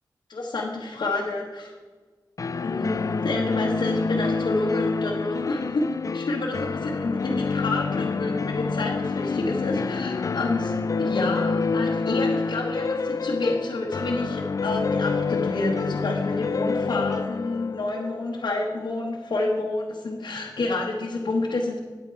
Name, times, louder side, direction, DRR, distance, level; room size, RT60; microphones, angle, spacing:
voice 1, 0.3-1.7 2.6-5.8 6.1-21.8, left 2 dB, 80° left, -3 dB, 1.2 m, -29 dB
sound 1, 2.4-19.1, left 4 dB, 50° left, 0.3 m, -27 dB
9.1 x 8.3 x 4.5 m, 1.4 s
wide cardioid pair, 65°, 8 cm